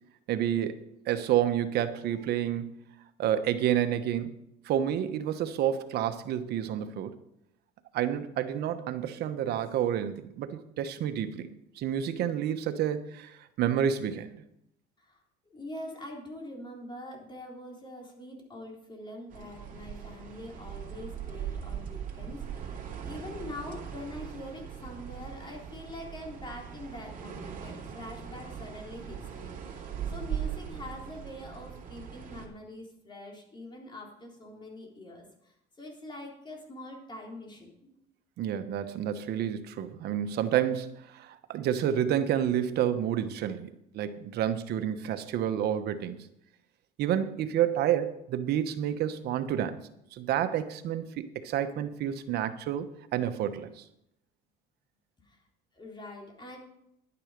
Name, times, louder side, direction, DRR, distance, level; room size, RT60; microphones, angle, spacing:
voice 1, 0.3-0.8 1.1-2.7 3.2-4.3 4.6-7.2 7.9-11.5 11.8-14.3 38.4-46.2 47.0-49.8 50.1-53.8, right 10 dB, 70° right, 10 dB, 1.1 m, -29 dB
voice 2, 15.0-37.9 55.2-55.4 55.7-56.6, left 1 dB, 25° left, 0 dB, 3.8 m, -44 dB
sound 1, 19.3-32.5, right 8 dB, 55° right, 2.7 m, -40 dB
11.0 x 9.9 x 5.1 m, 0.78 s
cardioid pair, 110°, 17 cm